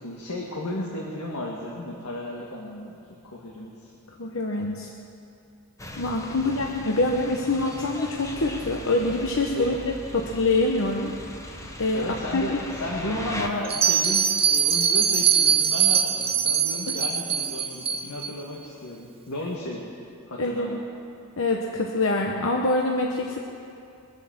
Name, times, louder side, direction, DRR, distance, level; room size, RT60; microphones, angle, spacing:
voice 1, 0.0-3.9 6.3-6.6 9.5-9.7 11.9-19.9 20.3-20.8, left 1 dB, 85° left, -3 dB, 1.8 m, -34 dB
voice 2, 4.2-4.9 6.0-11.1 11.4-12.1 12.3-12.4 20.4-20.8 21.4-23.4, left 2 dB, 65° left, 0 dB, 1.0 m, -25 dB
sound 1, 5.8-13.5, left 1 dB, 15° left, 1.1 m, -39 dB
Bell, 13.6-18.3, right 7 dB, 25° right, 1.0 m, -22 dB
22.5 x 8.2 x 7.3 m, 2.6 s
head